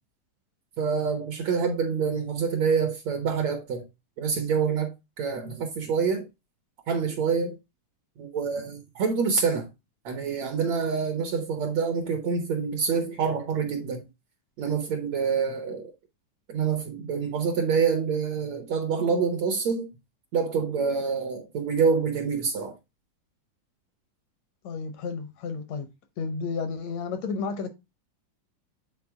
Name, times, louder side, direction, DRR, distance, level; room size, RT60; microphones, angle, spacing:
voice 1, 0.8-3.8 4.2-6.3 6.9-7.6 8.2-9.7 10.1-14.0 14.6-15.9 16.5-19.9 20.3-22.7, right 5 dB, 65° right, 1.8 m, -26 dB
voice 2, 24.6-25.9 26.2-27.7, left 4 dB, 75° left, 1.6 m, -32 dB
9.1 x 4.1 x 3.6 m
omnidirectional pair, 4.1 m